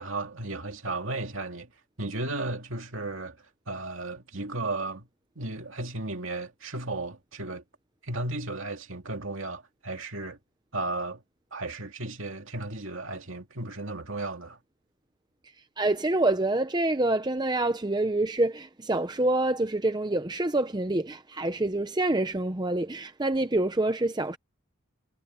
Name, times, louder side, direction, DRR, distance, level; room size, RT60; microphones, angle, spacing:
voice 1, 0.0-1.7 2.0-3.4 3.7-5.1 5.4-7.6 8.0-10.4 10.7-11.2 11.5-14.6, right 2 dB, 60° right, 2.6 m, -34 dB
voice 2, 15.8-24.4, right 2 dB, 20° right, 0.7 m, -26 dB
head